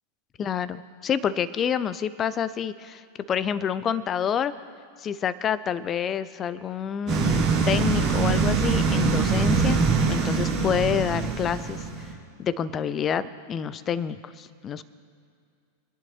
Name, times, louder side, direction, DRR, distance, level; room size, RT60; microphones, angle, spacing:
voice 1, 0.4-3.0 3.3-4.5 5.0-9.8 10.1-12.1 12.4-14.8, left 8 dB, 25° left, 16 dB, 0.6 m, -28 dB
sound 1, 7.1-12.1, right 5 dB, 35° right, 3.3 m, -23 dB
25.0 x 10.5 x 3.1 m, 2.3 s
figure-of-eight pair, 90°, 0 cm